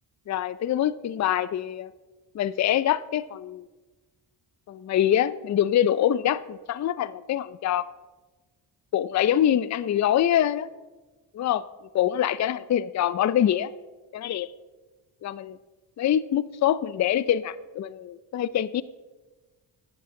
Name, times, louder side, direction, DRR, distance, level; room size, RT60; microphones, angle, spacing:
voice 1, 0.3-1.9 2.3-3.7 4.7-7.9 8.9-10.7 11.3-11.6 11.9-13.7 14.1-14.5 15.2-15.6 16.0-18.8, left 11 dB, 40° left, 18 dB, 0.5 m, -24 dB
16.0 x 8.2 x 3.8 m, 1.2 s
supercardioid pair, 65°, 47 cm